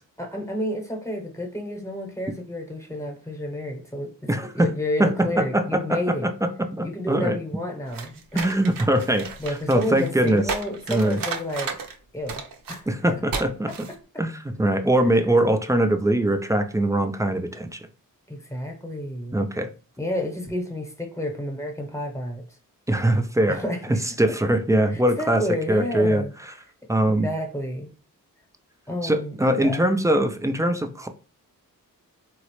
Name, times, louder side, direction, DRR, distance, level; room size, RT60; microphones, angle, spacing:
voice 1, 0.2-4.1 4.5-6.3 6.8-8.4 9.4-11.7 12.1-12.4 12.7-12.9 13.7-13.8 18.3-19.4 20.0-22.4 23.5-24.0 24.2-24.3 24.9-26.3 27.0-27.9 28.9-29.8, left 1 dB, 10° left, 0.9 m, -30 dB
voice 2, 4.3-4.7 5.0-7.4 8.3-9.3 9.7-10.4 10.9-11.2 12.9-13.7 14.2-17.9 19.3-19.7 22.9-23.6 23.9-26.2 26.9-27.3 29.0-31.1, right 1 dB, 10° right, 0.3 m, -22 dB
sound 1, 7.9-11.9 12.3-12.8 13.3-13.4 13.7-13.9, right 5 dB, 75° right, 0.6 m, -33 dB
3.8 x 2.0 x 3.0 m
cardioid pair, 85°, 34 cm